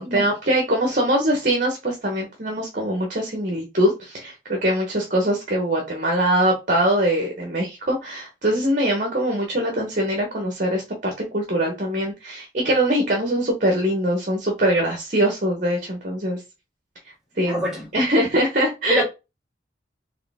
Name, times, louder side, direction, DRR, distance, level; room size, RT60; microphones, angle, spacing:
voice 1, 0.0-10.8 11.3-16.4 17.4-17.6 17.9-19.0, right 1 dB, 45° right, 1.2 m, -22 dB
voice 2, 17.5-17.8 18.9-19.0, equal, ahead, 2.4 m, -25 dB
4.8 x 3.2 x 3.5 m
head